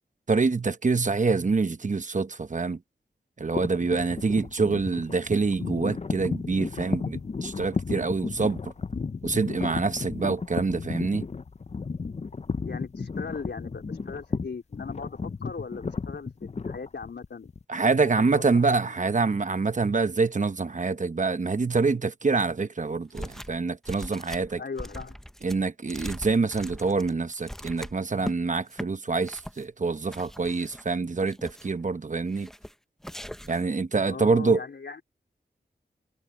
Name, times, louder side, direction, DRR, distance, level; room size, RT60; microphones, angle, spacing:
voice 1, 0.3-2.8 3.4-8.7 9.2-11.2 17.7-24.6 25.4-32.5 33.5-34.6, right 4 dB, 45° right, 0.9 m, -26 dB
sound 1, 3.6-17.6, left 4 dB, 40° left, 0.6 m, -33 dB
voice 2, 12.6-17.5 18.0-18.8 24.6-25.2 34.1-35.0, left 5 dB, 80° left, 3.9 m, -38 dB
sound 2, 23.1-23.6 23.8-28.4 28.7-28.9 29.2-29.6 30.1-30.8 31.2-31.8 32.3-32.7 33.0-33.6, equal, ahead, 0.7 m, -40 dB
wide cardioid pair, 95°, 18 cm